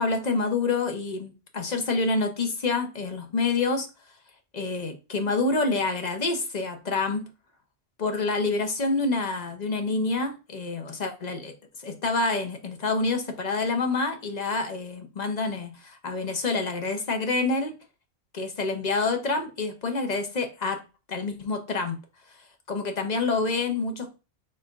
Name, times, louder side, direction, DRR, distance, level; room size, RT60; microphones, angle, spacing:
voice 1, 0.0-3.9 4.5-7.2 8.0-11.5 11.8-17.7 18.3-20.8 21.1-22.0 22.7-24.1, left 3 dB, 45° left, 0.9 m, -27 dB
4.5 x 4.3 x 2.4 m
omnidirectional pair, 1.1 m